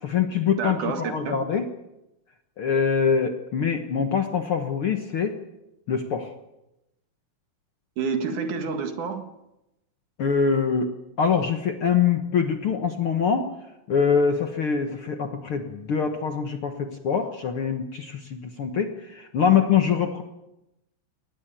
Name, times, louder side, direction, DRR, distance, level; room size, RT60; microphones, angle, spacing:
voice 1, 0.0-1.7 2.6-5.4 5.9-6.3 10.2-10.9 11.2-13.5 13.9-20.2, left 6 dB, 55° left, 6 dB, 1.7 m, -24 dB
voice 2, 0.6-1.4 8.0-9.2, right 5 dB, 65° right, 7 dB, 3.1 m, -28 dB
21.5 x 19.0 x 9.0 m, 0.91 s
omnidirectional pair, 3.9 m